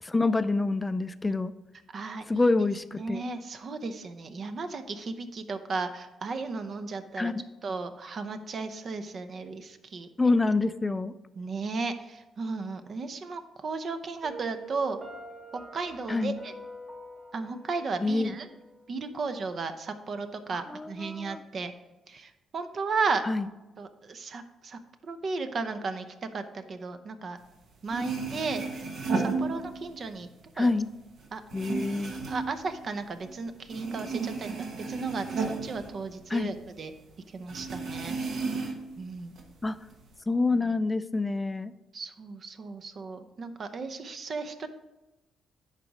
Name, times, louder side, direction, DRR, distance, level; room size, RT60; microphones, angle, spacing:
voice 1, 0.0-1.5 2.3-3.2 7.2-7.4 10.2-11.1 16.1-16.4 18.0-18.4 20.5-21.4 23.2-23.5 30.6-30.9 31.5-32.1 36.3-36.5 39.6-39.8 40.3-41.7, left 3 dB, 15° left, 13 dB, 0.4 m, -27 dB
voice 2, 1.9-2.5 3.0-7.3 7.6-10.1 11.4-15.0 15.7-16.5 17.3-18.5 18.9-21.7 22.1-23.2 23.8-26.0 26.3-27.4 27.8-28.6 29.1-30.3 30.6-30.7 31.3-31.4 32.3-36.9 37.3-39.4 41.9-44.7, right 4 dB, 50° right, 9 dB, 0.7 m, -35 dB
Piano, 14.2-19.2, right 2 dB, 35° right, 1.5 m, -46 dB
sound 1, 27.6-27.7 27.9-30.1 30.4-33.4 33.6-36.6 36.9-37.0 37.5-39.0 39.3-40.1, right 4 dB, 65° right, 1.3 m, -33 dB
10.5 x 4.1 x 5.0 m, 1.1 s
cardioid pair, 90°, 0 cm